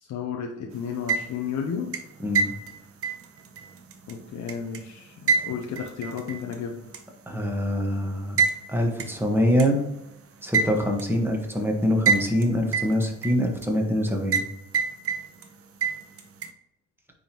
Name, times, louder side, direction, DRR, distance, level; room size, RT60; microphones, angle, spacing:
voice 1, 0.0-2.0 4.1-7.0, left 6 dB, 70° left, 2 dB, 0.8 m, -33 dB
sound 1, 0.9-1.5 1.9-4.8 5.3-6.5 6.9-7.0 8.4-8.6 9.0-9.1 9.6-9.7 10.5-11.1 12.1-12.4 12.7-13.7 14.3-14.5 14.7-15.5 15.8-16.5, right 5 dB, 50° right, 0.7 m, -26 dB
voice 2, 2.2-2.5 7.3-8.4 8.7-9.8 10.4-14.4, equal, 5° right, 1 dB, 1.5 m, -24 dB
9.2 x 3.7 x 3.0 m, 0.84 s
cardioid pair, 90°, 30 cm